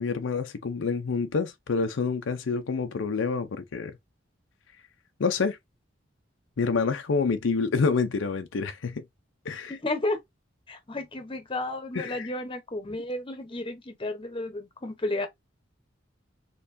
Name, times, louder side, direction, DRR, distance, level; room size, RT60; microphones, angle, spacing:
voice 1, 0.0-3.9 5.2-5.6 6.6-9.0 9.5-9.8 11.9-12.3, left 4 dB, 75° left, 0.5 m, -27 dB
voice 2, 9.7-10.2 10.7-15.3, left 2 dB, 30° left, 0.9 m, -32 dB
4.4 x 3.0 x 2.6 m
head